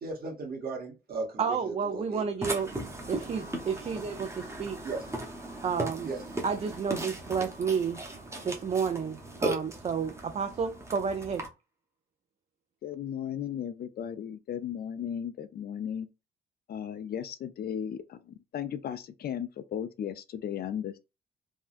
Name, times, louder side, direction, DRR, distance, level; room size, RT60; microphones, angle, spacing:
voice 1, 0.0-2.3 3.1-3.2 4.8-5.1 6.0-6.2, right 3 dB, 50° right, 1.3 m, -37 dB
voice 2, 1.4-2.7 3.1-4.8 5.6-6.1 6.4-8.0 8.4-11.4, right 6 dB, 30° right, 0.3 m, -31 dB
Burping eructation, 2.4-11.5, right 2 dB, 15° right, 0.8 m, -37 dB
voice 3, 12.8-16.1 16.7-21.0, left 9 dB, 50° left, 0.4 m, -36 dB
3.6 x 2.1 x 2.5 m
cardioid pair, 90°, 20 cm